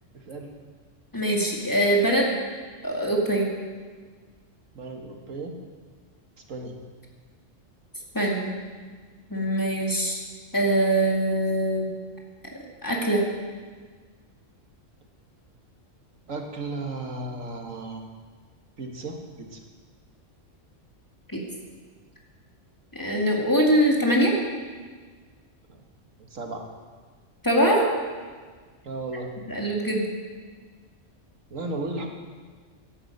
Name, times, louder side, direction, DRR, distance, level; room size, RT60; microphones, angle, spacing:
voice 1, 0.1-0.5 4.7-5.5 6.5-6.8 16.3-18.0 18.8-19.6 25.7-25.8 26.2-26.6 28.8-29.3 31.5-32.1, right 2 dB, 90° right, 2 dB, 2.1 m, -34 dB
voice 2, 1.1-2.3 2.8-3.5 8.1-8.5 9.3-10.2 10.5-11.9 12.8-13.2 21.3-21.4 22.9-24.3 27.4-27.8 29.5-30.0, right 1 dB, 15° left, -2 dB, 2.4 m, -22 dB
12.0 x 11.0 x 8.0 m, 1.5 s
omnidirectional pair, 1.3 m